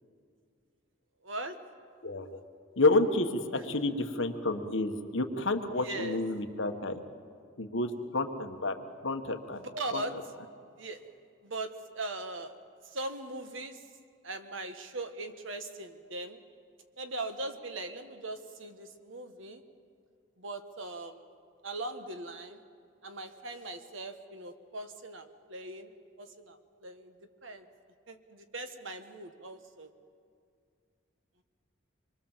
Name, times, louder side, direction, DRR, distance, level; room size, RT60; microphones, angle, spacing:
voice 1, 1.2-1.6 3.6-3.7 5.8-6.2 9.5-10.2 10.8-11.0 11.4-12.6 12.8-13.9 14.2-16.4 17.0-19.6 20.4-21.3 21.6-22.6 23.0-25.9 26.2-27.2 27.4-27.7 28.1-29.9, right 2 dB, 70° right, 8 dB, 1.4 m, -40 dB
voice 2, 2.8-7.0 7.6-8.8 9.0-9.6 9.9-10.0, left 2 dB, 70° left, 6 dB, 1.5 m, -29 dB
26.0 x 22.5 x 7.4 m, 2.3 s
head